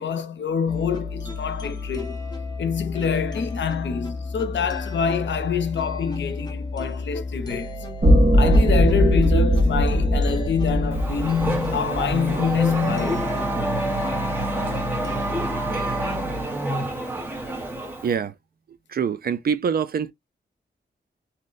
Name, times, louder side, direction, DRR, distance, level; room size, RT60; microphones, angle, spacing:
voice 1, 0.0-2.2 2.6-7.8 8.3-13.4, left 6 dB, 85° left, 0.6 m, -26 dB
sound 1, 0.7-16.4, left 2 dB, 20° left, 0.7 m, -34 dB
sound 2, 8.0-12.3, equal, 35° right, 1.0 m, -19 dB
Race car auto racing / Accelerating revving vroom, 10.9-18.1, right 1 dB, 10° right, 0.8 m, -27 dB
voice 2, 18.0-18.3 18.9-20.1, right 7 dB, 55° right, 0.4 m, -24 dB
2.7 x 2.1 x 3.8 m
wide cardioid pair, 135°, 18 cm